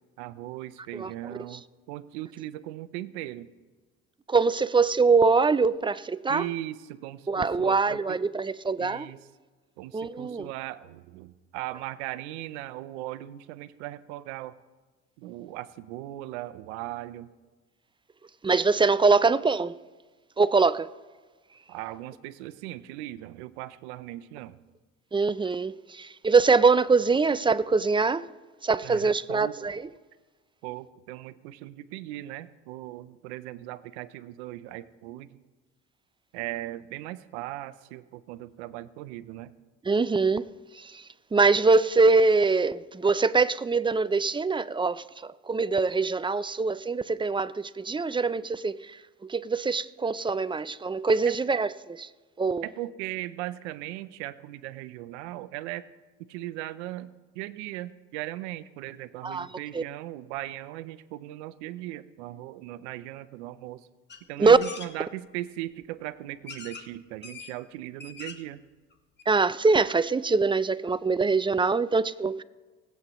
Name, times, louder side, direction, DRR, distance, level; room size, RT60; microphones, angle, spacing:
voice 1, 0.2-3.5 6.3-8.2 8.8-9.2 9.8-14.6 15.2-17.3 21.7-24.6 28.8-29.6 30.6-35.4 36.3-39.5 51.2-51.3 52.6-55.9 56.2-63.9 64.3-68.6, right 15 dB, 90° right, 0.7 m, -38 dB
voice 2, 4.3-6.5 7.3-9.1 9.9-10.5 18.4-19.8 20.4-20.9 25.1-28.3 28.6-29.9 39.9-40.5 40.7-41.0 41.3-52.1 52.4-52.7 59.2-59.5 59.7-59.8 64.4-64.6 69.3-72.4, right 4 dB, 15° right, 0.4 m, -23 dB
sound 1, 64.1-64.2 64.6-64.9 65.8-65.9 66.5-66.9 67.2-67.5 67.9-68.5 68.9-69.0 69.2-69.3, left 5 dB, 30° left, 1.4 m, -42 dB
20.0 x 8.3 x 3.1 m
supercardioid pair, 75°, 33 cm